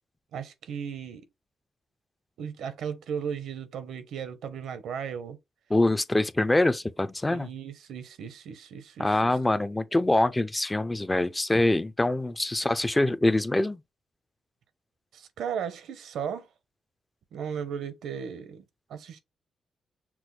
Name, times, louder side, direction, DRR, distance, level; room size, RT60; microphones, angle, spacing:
voice 1, 0.3-1.2 2.4-5.4 7.3-9.3 15.1-16.5 17.3-18.6 18.9-19.2, right 7 dB, 90° right, 0.7 m, -36 dB
voice 2, 5.7-7.5 9.0-13.8, left 2 dB, 15° left, 0.4 m, -24 dB
6.0 x 2.2 x 3.2 m
cardioid pair, 120°, 0 cm